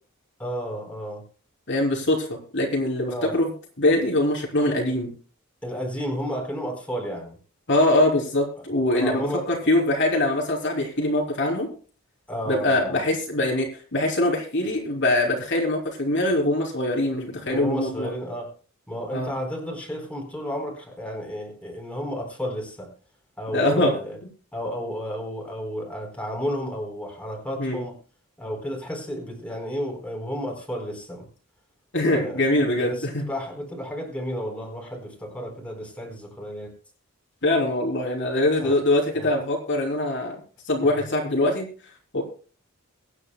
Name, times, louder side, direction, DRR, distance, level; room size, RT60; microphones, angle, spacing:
voice 1, 0.4-1.2 3.1-3.4 5.6-7.4 8.9-9.5 12.3-13.0 17.5-18.5 18.9-22.9 23.4-24.2 24.5-28.0 28.4-31.3 32.1-36.7 38.6-38.8 39.1-39.3, equal, 5° left, 1 dB, 4.2 m, -32 dB
voice 2, 1.7-3.5 3.8-5.1 7.7-11.7 12.5-18.1 19.1-19.3 23.5-23.9 27.6-27.8 31.9-33.2 37.4-40.4 40.7-41.7 42.1-42.2, left 1 dB, 55° left, -1 dB, 3.3 m, -23 dB
23.5 x 9.8 x 2.2 m, 0.37 s
head